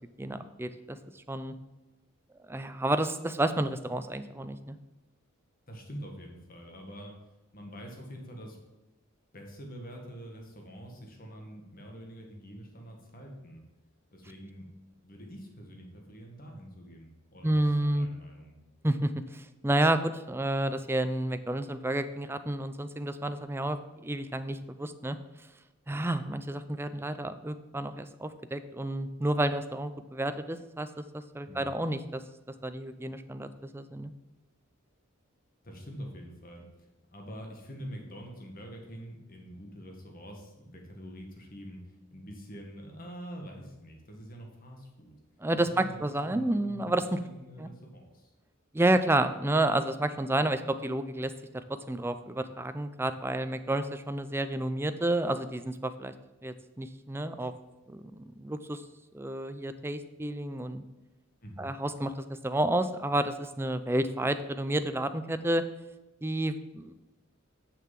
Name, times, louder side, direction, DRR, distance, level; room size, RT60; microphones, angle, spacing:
voice 1, 0.2-1.0 1.3-1.5 2.5-4.8 17.4-18.1 18.8-25.2 25.9-32.2 32.6-34.1 45.4-47.2 47.6-47.7 48.7-51.3 51.9-56.1 56.4-57.5 57.9-58.8 59.1-60.8 61.6-62.1 62.4-65.6 66.2-66.9, right 1 dB, 10° right, 10 dB, 0.5 m, -30 dB
voice 2, 5.7-7.1 7.5-8.6 9.3-13.6 14.1-14.7 15.0-18.6 31.4-31.7 35.6-41.8 42.1-45.2 45.7-48.3 61.4-61.7, equal, 45° left, 1 dB, 1.8 m, -45 dB
6.7 x 6.7 x 7.5 m, 1.0 s
head